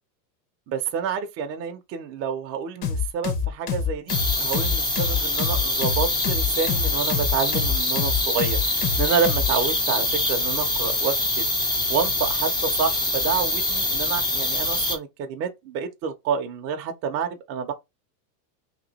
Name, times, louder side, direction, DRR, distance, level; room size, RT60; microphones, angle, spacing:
voice 1, 0.7-11.5 11.9-17.7, right 6 dB, 30° right, 0.6 m, -28 dB
sound 1, 2.8-9.5, left 7 dB, 45° left, 1.1 m, -26 dB
sound 2, 4.1-15.0, left 2 dB, 10° left, 0.5 m, -25 dB
3.0 x 2.8 x 4.0 m
supercardioid pair, 130°, 49 cm